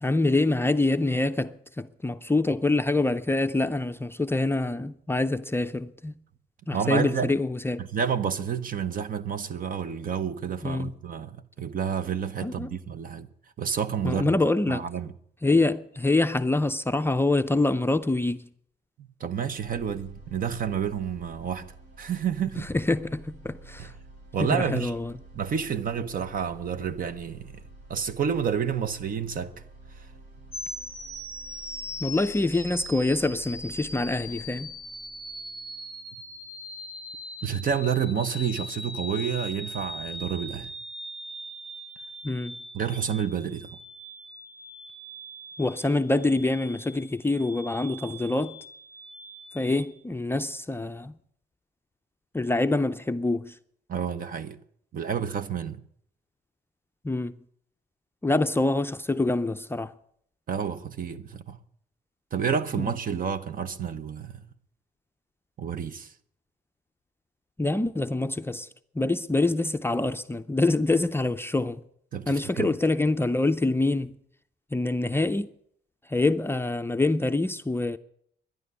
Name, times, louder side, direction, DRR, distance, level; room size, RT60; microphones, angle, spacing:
voice 1, 0.0-6.1 6.7-7.8 10.6-10.9 12.4-12.7 14.0-14.8 15.4-18.4 22.7-23.9 24.4-25.1 32.0-34.7 42.2-42.6 45.6-48.6 49.5-51.1 52.3-53.5 57.0-57.4 58.2-59.9 62.8-62.9 67.6-68.7 69.0-71.8 72.3-74.2 74.7-75.5 76.1-78.0, left 2 dB, 15° left, 0.5 m, -25 dB
voice 2, 6.7-7.3 7.8-13.3 13.6-14.3 14.7-15.1 19.0-22.7 23.8-23.9 24.3-25.0 25.3-27.6 27.9-29.6 30.0-30.1 37.4-40.7 42.7-43.7 53.9-54.6 54.9-55.8 60.5-61.6 62.3-64.4 65.6-66.1 72.1-72.7, right 7 dB, 50° right, 1.0 m, -29 dB
sound 1, 19.6-37.6, right 2 dB, 85° right, 4.9 m, -50 dB
sound 2, 30.5-49.9, left 1 dB, 5° right, 2.5 m, -41 dB
12.0 x 11.0 x 9.8 m
cardioid pair, 125°, 18 cm